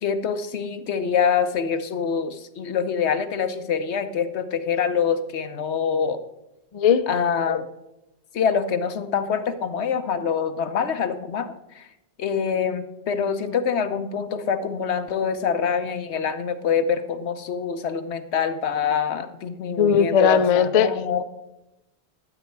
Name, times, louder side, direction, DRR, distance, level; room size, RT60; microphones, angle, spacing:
voice 1, 0.0-6.2 7.1-7.7 8.3-11.9 12.2-21.2, left 6 dB, 80° left, 9 dB, 1.1 m, -25 dB
voice 2, 6.7-7.1 19.8-20.9, left 7 dB, 45° left, 11 dB, 0.5 m, -18 dB
12.5 x 7.9 x 4.6 m, 0.93 s
omnidirectional pair, 1.1 m